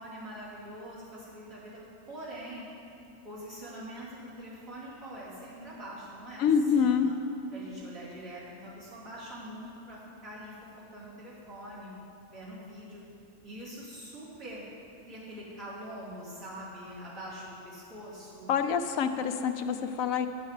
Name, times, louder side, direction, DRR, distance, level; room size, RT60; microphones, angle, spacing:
voice 1, 0.0-1.8 2.1-2.7 3.2-7.0 7.5-11.9 12.3-13.0 13.4-14.7 15.0-18.5, equal, 85° right, -9 dB, 3.5 m, -44 dB
voice 2, 6.4-7.1 18.5-20.3, left 7 dB, 85° left, 8 dB, 1.0 m, -26 dB
9.5 x 5.6 x 8.1 m, 2.7 s
omnidirectional pair, 1.4 m